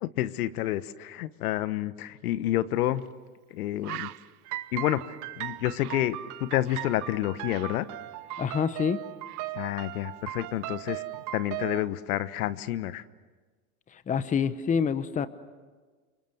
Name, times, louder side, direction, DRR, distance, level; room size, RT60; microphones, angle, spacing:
voice 1, 0.0-3.0 3.5-4.1 4.7-7.9 9.5-11.0 11.3-13.0, left 13 dB, 75° left, 14 dB, 1.3 m, -29 dB
Bird, 3.0-3.1 3.4-3.5 3.8-7.0 7.3-8.9 9.2-9.5, right 16 dB, 80° right, 0.9 m, -45 dB
sound 1, 4.5-11.9, right 15 dB, 40° right, 1.2 m, -38 dB
voice 2, 8.4-9.0 13.9-15.3, left 7 dB, 15° left, 13 dB, 1.0 m, -27 dB
28.5 x 25.0 x 7.9 m, 1.4 s
supercardioid pair, 125°, 44 cm